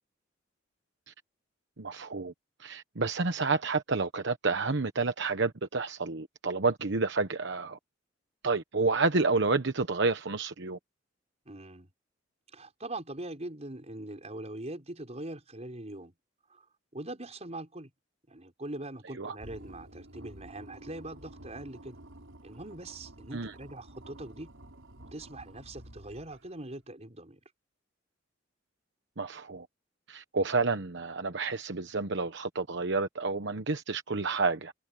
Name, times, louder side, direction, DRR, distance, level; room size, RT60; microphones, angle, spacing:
voice 1, 1.8-2.3 2.6-7.8 8.4-10.8 19.2-19.3 23.3-23.5 29.2-29.7 30.1-34.7, right 3 dB, 65° right, 1.1 m, -29 dB
voice 2, 11.5-11.9 12.5-16.1 16.5-16.7 16.9-17.9 18.3-22.0 22.4-24.5 25.1-27.4, right 1 dB, 35° right, 5.2 m, -42 dB
sound 1, 19.4-26.6, right 1 dB, 90° right, 5.1 m, -51 dB
head